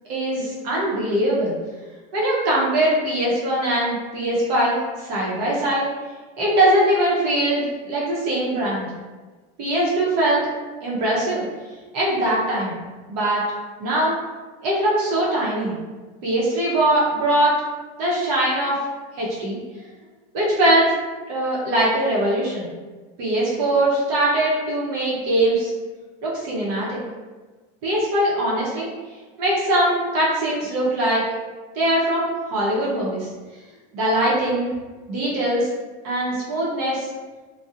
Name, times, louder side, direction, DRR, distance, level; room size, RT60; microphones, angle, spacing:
voice 1, 0.1-1.5 2.1-5.9 6.4-8.9 9.6-10.4 10.8-11.4 11.9-12.7 13.1-13.4 13.8-14.1 14.6-15.7 16.2-17.5 18.0-18.8 19.2-19.6 20.3-20.9 21.3-22.7 23.2-25.7 26.2-27.0 27.8-28.9 29.4-31.2 31.7-33.3 33.9-34.7 35.1-35.7 36.0-37.1, right 1 dB, 70° right, -6 dB, 0.7 m, -21 dB
2.7 x 2.0 x 2.3 m, 1.3 s
cardioid pair, 175°, 21 cm